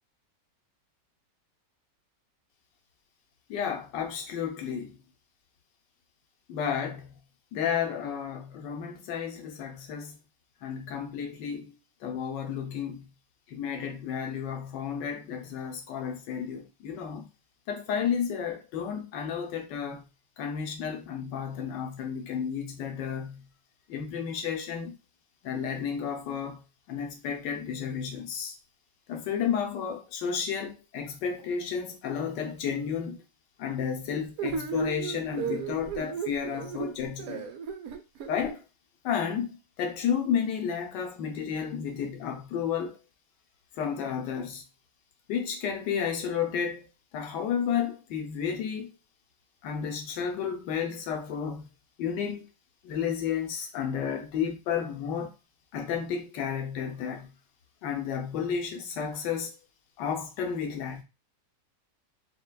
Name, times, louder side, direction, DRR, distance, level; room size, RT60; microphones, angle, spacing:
voice 1, 3.5-5.0 6.5-7.1 7.5-10.2 10.6-11.7 12.0-13.1 13.5-17.3 17.7-20.0 20.4-23.5 23.9-25.0 25.4-26.6 26.9-28.6 29.1-33.2 33.6-37.4 38.3-38.6 39.0-43.0 43.8-44.6 45.3-46.9 47.1-48.9 49.6-51.7 52.0-52.5 52.8-55.3 55.7-57.3 57.8-59.5 60.0-61.0, left 7 dB, 85° left, 1.4 m, -32 dB
sound 1, 34.4-38.5, right 6 dB, 65° right, 1.0 m, -34 dB
6.5 x 2.2 x 2.2 m
omnidirectional pair, 1.8 m